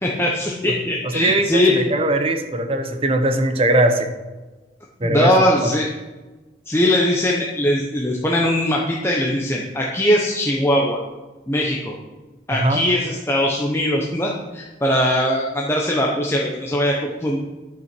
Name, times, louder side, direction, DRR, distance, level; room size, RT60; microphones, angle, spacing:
voice 1, 0.0-1.8 5.0-5.9 6.7-11.0 11.5-11.9 12.5-17.4, left 1 dB, 15° left, -2 dB, 0.8 m, -20 dB
voice 2, 1.1-4.1 5.0-5.7 12.5-12.8, right 1 dB, 30° right, 7 dB, 0.8 m, -20 dB
10.5 x 5.8 x 6.0 m, 1.2 s
head